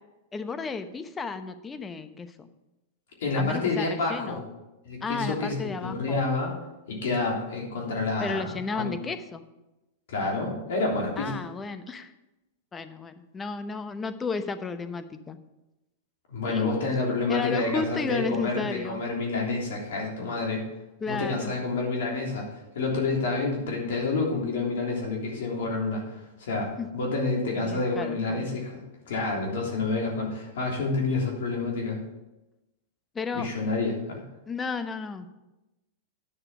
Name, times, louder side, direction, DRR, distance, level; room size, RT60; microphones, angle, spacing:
voice 1, 0.3-2.5 3.4-4.4 5.0-6.2 8.2-9.4 11.2-12.1 12.7-15.4 16.4-16.9 17.3-19.0 21.0-21.5 26.8-26.9 27.5-28.5 33.1-33.5 34.5-35.3, left 4 dB, 20° left, 10 dB, 0.9 m, -33 dB
voice 2, 3.2-4.4 4.8-6.5 6.9-8.4 8.7-8.9 10.1-11.4 16.3-20.6 21.1-22.5 22.7-26.0 26.4-28.8 29.1-32.0 33.3-34.2, left 3 dB, 70° left, -1 dB, 3.3 m, -28 dB
10.0 x 6.5 x 6.0 m, 0.97 s
hypercardioid pair, 115°, 0 cm